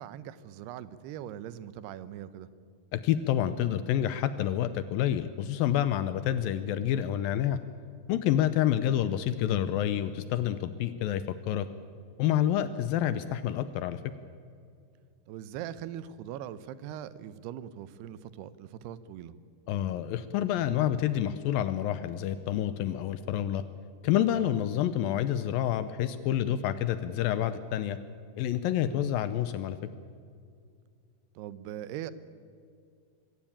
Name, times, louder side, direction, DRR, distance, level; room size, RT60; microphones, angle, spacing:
voice 1, 0.0-2.5 8.4-8.5 12.7-12.9 15.3-19.4 28.9-29.1 31.4-32.1, right 11 dB, 85° right, 15 dB, 2.9 m, -41 dB
voice 2, 2.9-7.6 8.1-11.7 12.2-14.0 19.7-23.6 24.0-28.0 28.4-29.8, left 11 dB, 80° left, 13 dB, 2.2 m, -28 dB
24.0 x 16.0 x 8.7 m, 2.3 s
omnidirectional pair, 4.6 m